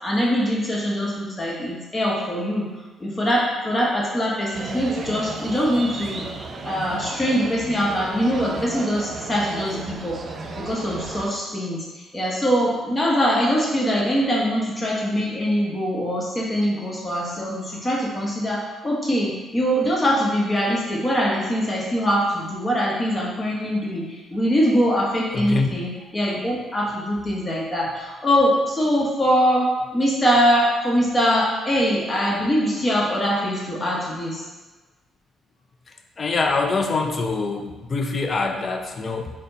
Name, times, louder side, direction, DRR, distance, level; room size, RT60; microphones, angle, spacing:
voice 1, 0.0-2.7 3.0-6.2 6.6-10.2 10.6-34.4, equal, 25° left, -4 dB, 1.0 m, -23 dB
sound 1, 4.5-11.3, right 3 dB, 50° right, 0.4 m, -34 dB
voice 2, 25.3-25.7 36.2-39.3, left 3 dB, 40° left, 4 dB, 0.4 m, -24 dB
4.1 x 2.2 x 3.9 m, 1.2 s
cardioid pair, 90°, 0 cm